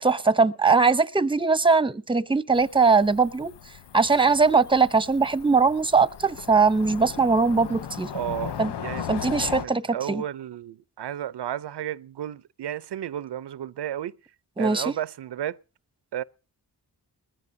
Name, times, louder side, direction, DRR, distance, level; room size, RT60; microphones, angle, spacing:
voice 1, 0.0-3.5 3.9-8.1 8.6-8.7 9.1-10.2 14.6-14.9, right 4 dB, 15° right, 0.7 m, -21 dB
Cricket / Motor vehicle (road), 2.5-9.6, left 9 dB, 85° left, 0.8 m, -37 dB
voice 2, 8.1-14.1 14.6-15.6 16.1-16.2, right 11 dB, 90° right, 0.6 m, -33 dB
21.0 x 15.0 x 2.7 m
wide cardioid pair, 100°, 40 cm